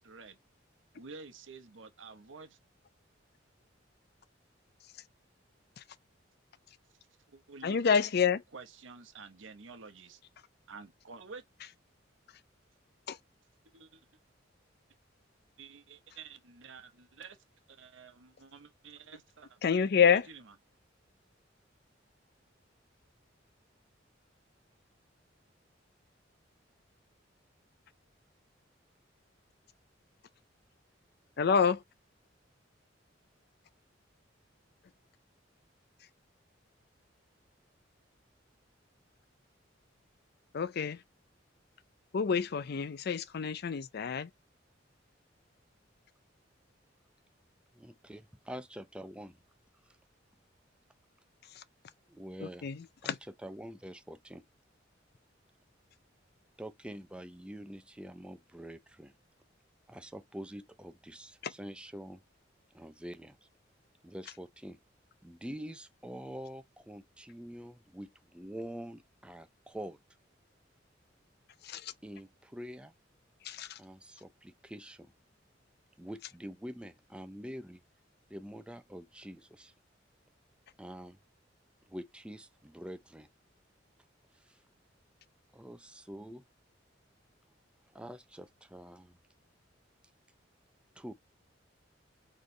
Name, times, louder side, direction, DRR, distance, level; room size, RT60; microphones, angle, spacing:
voice 1, 0.0-0.4 0.9-2.6 7.3-7.8 8.5-10.2 10.7-11.4 13.7-14.0 15.6-17.4 17.7-19.8 20.1-20.4, right 4 dB, 85° right, 0.9 m, -50 dB
voice 2, 7.6-8.4 13.1-13.2 19.6-20.3 31.4-31.8 40.5-41.0 42.1-44.3 51.6-51.7 52.4-53.2 61.4-61.5 71.6-71.9 73.4-73.8, left 6 dB, 55° left, 0.5 m, -28 dB
voice 3, 47.7-49.4 52.1-52.7 53.0-54.4 56.6-59.2 59.9-62.2 62.7-63.4 64.0-64.8 65.2-70.0 72.0-72.9 73.8-75.1 76.0-77.8 78.3-79.7 80.8-81.2 81.9-83.3 84.4-84.6 85.5-86.4 87.9-89.2 91.0-91.1, equal, 5° right, 0.5 m, -45 dB
4.3 x 3.2 x 3.1 m
head